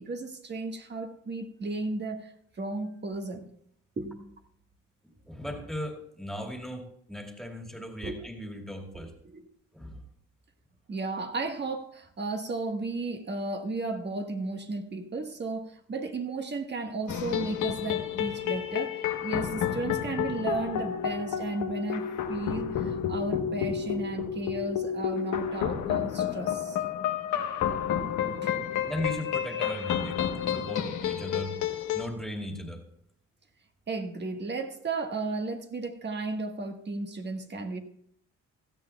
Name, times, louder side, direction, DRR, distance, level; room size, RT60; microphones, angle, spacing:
voice 1, 0.0-3.4 4.0-4.3 8.0-8.2 8.9-9.5 10.9-26.8 28.4-28.8 33.9-37.8, right 3 dB, 35° right, 1.5 m, -34 dB
voice 2, 5.0-9.1 9.7-10.0 28.9-30.2 30.5-31.6 31.9-32.8, left 1 dB, ahead, 2.4 m, -37 dB
sound 1, 17.1-32.1, left 9 dB, 80° left, 1.1 m, -30 dB
16.5 x 13.0 x 2.3 m
cardioid pair, 90°, 30 cm